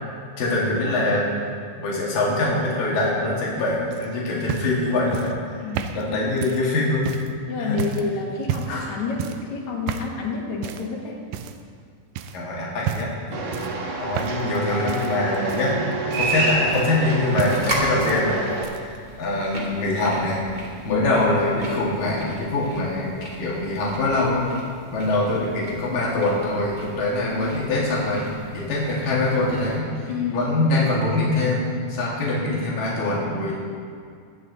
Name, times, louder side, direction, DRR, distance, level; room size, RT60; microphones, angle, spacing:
voice 1, 0.4-1.3 1.8-5.3 5.9-7.1 7.6-7.8 8.7-8.8 12.3-13.6 14.0-15.7 16.1-20.4 20.8-23.1 23.3-24.4 24.9-28.2 28.5-33.6, left 2 dB, 90° left, -5 dB, 4.0 m, -24 dB
sound 1, 3.9-7.3 7.8-8.1 8.4-8.8 9.2-9.5 9.9-10.2 10.6-10.9 11.3-11.8 12.2-12.4 12.8-13.2 13.5-14.6 14.9-17.1 17.4-18.2 18.5-19.0 19.9-20.0, right 9 dB, 85° right, 2.2 m, -31 dB
voice 2, 5.6-6.3 7.5-11.2 20.9-21.1 30.1-30.5, left 4 dB, 65° left, -1 dB, 3.0 m, -29 dB
sound 2, 13.3-18.6, right 2 dB, 65° right, 3.1 m, -27 dB
sound 3, 16.9-29.8, equal, 15° right, 2.1 m, -37 dB
22.0 x 9.2 x 4.1 m, 2.2 s
omnidirectional pair, 3.8 m